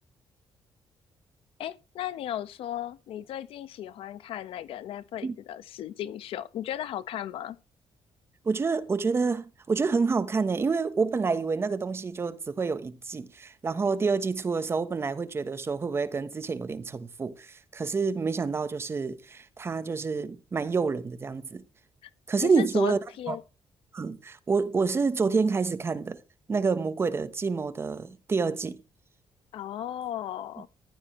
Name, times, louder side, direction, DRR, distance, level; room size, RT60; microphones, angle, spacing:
voice 1, 1.6-7.6 22.0-22.1 22.4-23.4 29.5-30.7, left 11 dB, 80° left, 1.2 m, -35 dB
voice 2, 8.4-21.6 22.3-23.0 23.3-23.4 23.9-26.2 26.5-28.8, right 4 dB, 25° right, 1.3 m, -28 dB
14.5 x 12.0 x 3.3 m
cardioid pair, 145°, 9 cm